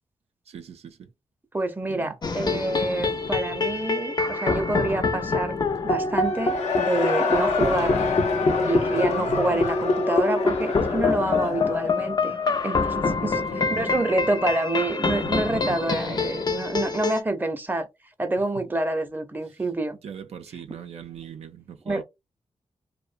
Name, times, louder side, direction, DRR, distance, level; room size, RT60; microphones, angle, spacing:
voice 1, 0.5-1.1 1.9-2.2 9.1-9.7 13.1-14.1 15.2-15.8 18.5-18.7 19.4-19.7 20.0-22.0, right 8 dB, 70° right, 0.4 m, -40 dB
voice 2, 1.5-5.6 5.8-7.9 8.6-12.4 12.6-13.4 13.7-17.9 18.2-20.0 21.9-22.0, right 2 dB, 15° right, 0.6 m, -27 dB
sound 1, 2.2-17.2, left 3 dB, 40° left, 0.4 m, -25 dB
Cheering / Crowd, 6.2-12.9, left 5 dB, 85° left, 0.6 m, -28 dB
2.4 x 2.1 x 2.4 m
cardioid pair, 50°, 11 cm